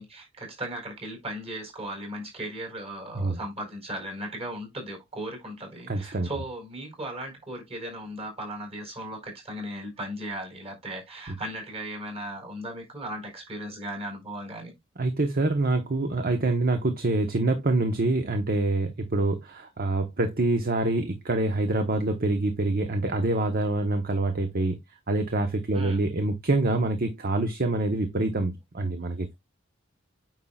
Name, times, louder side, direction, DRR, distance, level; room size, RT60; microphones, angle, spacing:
voice 1, 0.0-14.7 25.7-26.0, right 1 dB, 30° right, 4.5 m, -37 dB
voice 2, 5.9-6.3 15.0-24.8 25.1-29.3, right 2 dB, 50° right, 1.0 m, -26 dB
9.3 x 5.7 x 2.4 m
head